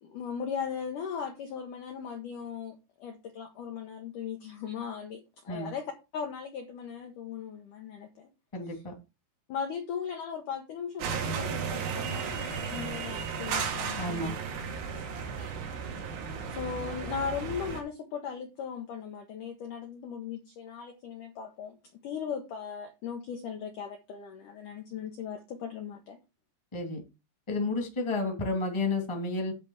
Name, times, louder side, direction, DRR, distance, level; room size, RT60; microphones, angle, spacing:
voice 1, 0.0-5.8 6.1-8.3 9.5-14.4 14.9-15.1 16.5-21.8 22.0-26.2, left 7 dB, 75° left, 4 dB, 1.9 m, -38 dB
voice 2, 8.5-8.9 14.0-14.3 26.7-27.0 27.5-29.5, left 2 dB, 10° left, 3 dB, 1.3 m, -31 dB
sound 1, 11.0-17.8, right 6 dB, 85° right, 4.5 m, -34 dB
10.5 x 3.6 x 7.2 m, 0.27 s
omnidirectional pair, 5.4 m